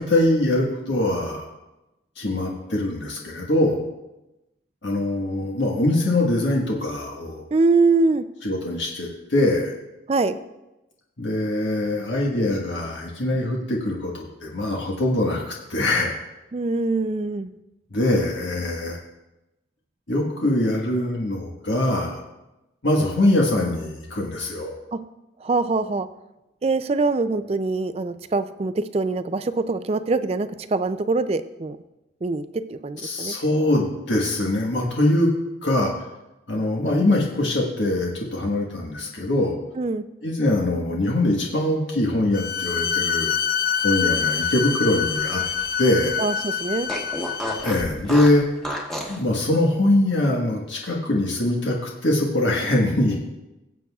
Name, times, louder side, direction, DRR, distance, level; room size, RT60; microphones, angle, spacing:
voice 1, 0.0-1.5 2.2-3.8 4.8-7.4 8.4-9.7 11.2-16.2 17.9-19.0 20.1-22.2 22.8-24.7 33.0-35.3 35.6-35.9 36.5-39.6 40.2-43.3 43.8-45.4 45.8-46.2 47.6-48.4 49.1-53.2, left 1 dB, 80° left, -2 dB, 1.4 m, -22 dB
voice 2, 7.5-8.2 10.1-10.4 16.5-17.5 24.9-25.0 25.4-26.1 26.6-31.8 32.2-33.3 39.8-40.1 46.2-46.9, right 3 dB, 30° right, 12 dB, 0.4 m, -23 dB
Bowed string instrument, 42.3-47.8, left 7 dB, 50° left, 0.4 m, -26 dB
Fart, 43.9-45.9 46.2-46.3 46.9-49.2, equal, 5° left, 1.1 m, -33 dB
19.0 x 7.9 x 2.4 m, 0.98 s
head